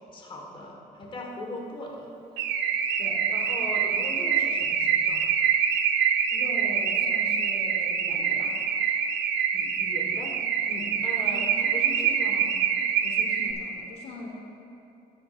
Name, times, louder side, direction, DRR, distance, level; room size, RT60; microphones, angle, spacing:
voice 1, 0.1-2.1 3.3-5.3 9.5-10.3 11.0-12.6, left 1 dB, 30° left, -1 dB, 1.6 m, -39 dB
Car / Alarm, 2.4-13.5, right 7 dB, 85° right, 0.6 m, -25 dB
voice 2, 6.3-8.6 10.7-10.9 13.0-14.3, left 2 dB, 80° left, 0 dB, 1.3 m, -41 dB
13.0 x 9.6 x 2.5 m, 2.8 s
cardioid pair, 110°, 17 cm